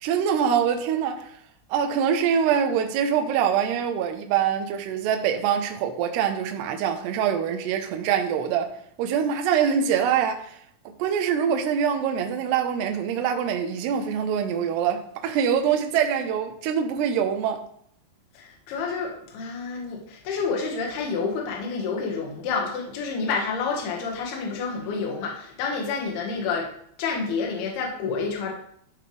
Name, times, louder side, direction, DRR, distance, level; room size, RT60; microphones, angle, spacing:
voice 1, 0.0-1.4 1.7-8.7 9.0-10.6 11.0-17.6, right 8 dB, 75° right, 2.7 m, -24 dB
voice 2, 18.3-26.7 27.0-28.5, left 5 dB, 65° left, 3.3 m, -29 dB
13.5 x 5.6 x 3.4 m
omnidirectional pair, 5.2 m